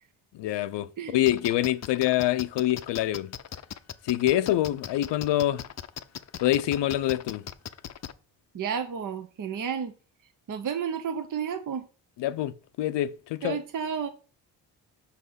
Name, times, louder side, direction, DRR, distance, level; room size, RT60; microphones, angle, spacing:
voice 1, 0.3-3.3 4.0-5.6 6.4-7.4 12.2-13.6, left 13 dB, 75° left, 0.6 m, -26 dB
sound 1, 1.3-8.1, left 9 dB, 40° left, 0.6 m, -38 dB
voice 2, 8.5-9.9 10.5-11.9 13.4-14.1, right 7 dB, 45° right, 0.8 m, -31 dB
5.8 x 5.7 x 6.3 m
cardioid pair, 85°, 43 cm